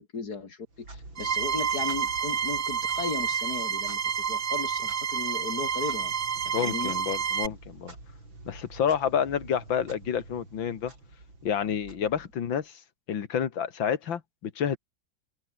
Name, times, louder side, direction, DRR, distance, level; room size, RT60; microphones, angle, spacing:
voice 1, 0.0-6.1 6.4-6.9, left 5 dB, 55° left, 3.1 m, -36 dB
Clock, 0.7-12.6, right 2 dB, 85° right, 8.4 m, -48 dB
sound 1, 1.2-7.5, right 7 dB, 45° right, 0.8 m, -29 dB
voice 2, 6.5-7.9 8.5-10.9 11.4-12.7 13.1-14.8, left 8 dB, 85° left, 2.4 m, -29 dB
open air
omnidirectional pair, 2.1 m